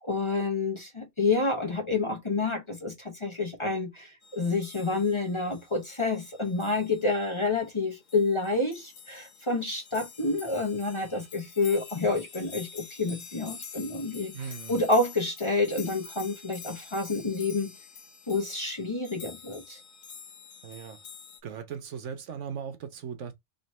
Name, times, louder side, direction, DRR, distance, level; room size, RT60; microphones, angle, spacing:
voice 1, 0.0-14.3 14.7-17.7 18.3-19.8, left 3 dB, 25° left, 0.9 m, -28 dB
sound 1, 4.2-21.4, left 6 dB, 85° left, 1.5 m, -47 dB
voice 2, 14.3-14.8 20.6-21.0 21.4-23.3, right 7 dB, 70° right, 1.1 m, -38 dB
3.2 x 3.0 x 4.1 m
omnidirectional pair, 1.3 m